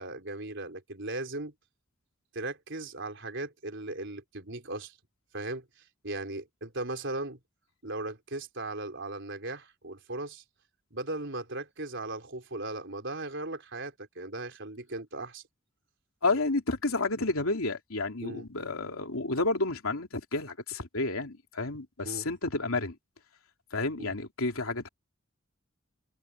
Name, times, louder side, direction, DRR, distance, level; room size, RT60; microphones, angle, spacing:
voice 1, 0.0-1.5 2.3-4.9 5.3-5.6 6.0-7.4 7.8-10.4 10.9-15.4 18.2-18.4 22.0-22.3 24.0-24.2, right 2 dB, 60° right, 4.6 m, -37 dB
voice 2, 16.2-23.0 23.7-24.9, left 2 dB, 85° left, 3.0 m, -30 dB
head